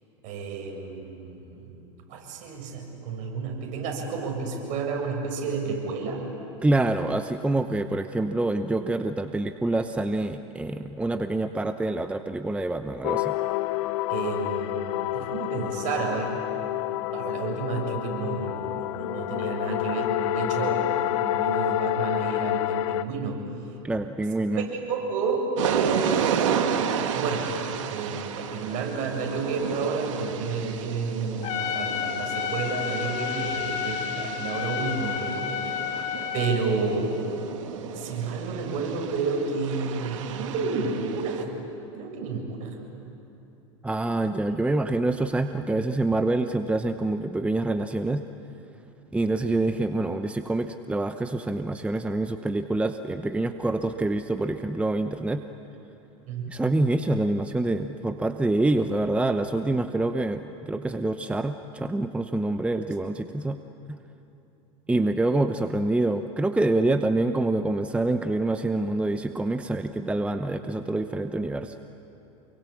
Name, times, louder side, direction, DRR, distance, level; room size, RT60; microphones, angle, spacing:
voice 1, 0.2-1.6 2.1-6.2 14.1-16.4 17.1-23.5 24.5-26.5 27.1-27.5 27.9-35.5 36.3-37.1 37.9-41.5 42.0-42.8 56.3-56.5, right 4 dB, 50° right, 1 dB, 7.3 m, -30 dB
voice 2, 6.6-13.3 23.8-24.7 43.8-48.2 49.1-55.4 56.5-63.6 63.9-64.0 64.9-71.8, right 2 dB, 5° right, 8 dB, 0.8 m, -26 dB
sound 1, 13.0-23.0, left 15 dB, 70° left, 0.8 m, -28 dB
sound 2, 25.6-41.4, right 8 dB, 75° right, 2.1 m, -32 dB
Trumpet, 31.4-36.7, left 9 dB, 45° left, 2.4 m, -31 dB
28.5 x 23.5 x 8.6 m, 2.9 s
hypercardioid pair, 105°, 16 cm